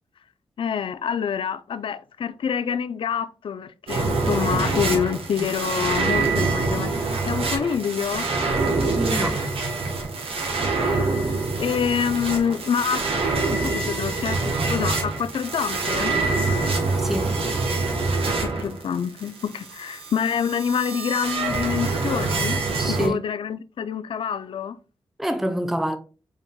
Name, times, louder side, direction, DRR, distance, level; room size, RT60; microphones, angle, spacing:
voice 1, 0.6-8.3 10.8-13.0 13.5-16.1 18.4-22.6 22.9-24.8, left 7 dB, 65° left, 0.4 m, -27 dB
sound 1, 3.9-23.1, right 3 dB, 75° right, 1.2 m, -25 dB
voice 2, 8.8-9.5 17.0-17.3 22.8-23.2 25.2-26.0, right 1 dB, 5° right, 0.5 m, -26 dB
5.0 x 3.9 x 2.2 m
cardioid pair, 50°, 10 cm